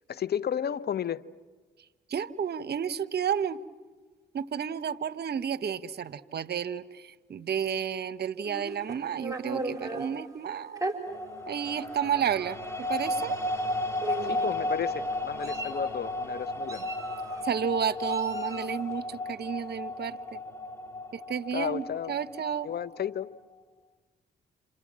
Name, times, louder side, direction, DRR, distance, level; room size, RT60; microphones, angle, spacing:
voice 1, 0.1-1.2 14.2-16.9 21.5-22.2 22.6-23.4, left 9 dB, 55° left, 0.8 m, -33 dB
voice 2, 2.1-3.6 4.3-10.8 11.5-13.3 17.4-20.4 21.1-22.7, right 8 dB, 55° right, 1.0 m, -31 dB
Meow, 8.4-10.1 10.8-11.0 11.8-11.9 12.3-12.5 13.5-13.6 14.0-14.5 15.1-15.9 16.7-17.4 18.1-18.8, right 2 dB, 15° right, 4.8 m, -36 dB
sound 1, 11.1-23.3, left 1 dB, 15° left, 3.2 m, -34 dB
29.0 x 27.5 x 7.4 m
supercardioid pair, 60°, 19 cm